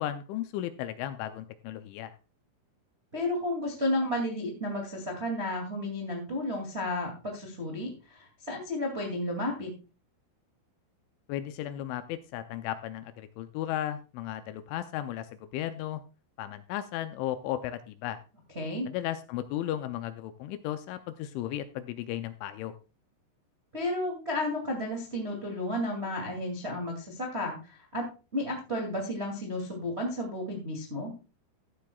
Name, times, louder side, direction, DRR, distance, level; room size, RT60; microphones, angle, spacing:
voice 1, 0.0-2.1 11.3-16.0 16.4-18.2 18.9-22.7, left 12 dB, 80° left, 10 dB, 2.8 m, -35 dB
voice 2, 3.1-9.7 18.5-18.8 23.7-28.0 28.3-31.1, left 1 dB, 45° right, 0 dB, 0.8 m, -32 dB
15.0 x 11.0 x 2.3 m, 0.32 s
omnidirectional pair, 5.8 m